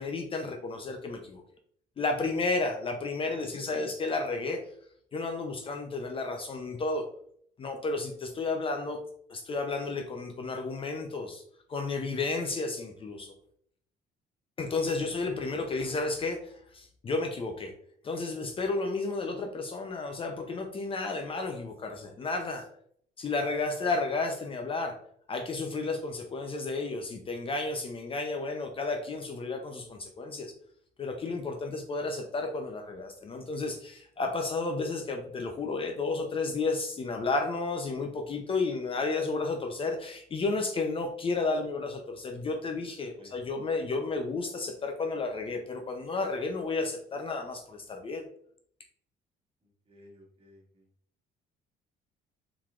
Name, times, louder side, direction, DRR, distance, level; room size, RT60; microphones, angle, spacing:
voice 1, 0.0-1.4 2.0-4.6 5.1-7.0 7.6-9.0 9.3-11.4 11.7-13.3 14.6-17.7 18.0-22.6 23.2-25.0 25.3-30.5 31.0-48.2, left 3 dB, 30° left, 4 dB, 0.6 m, -32 dB
voice 2, 3.3-3.9 43.2-43.3 49.9-50.8, equal, 35° right, -2 dB, 1.7 m, -52 dB
4.4 x 3.9 x 2.4 m, 0.64 s
cardioid pair, 110°, 17 cm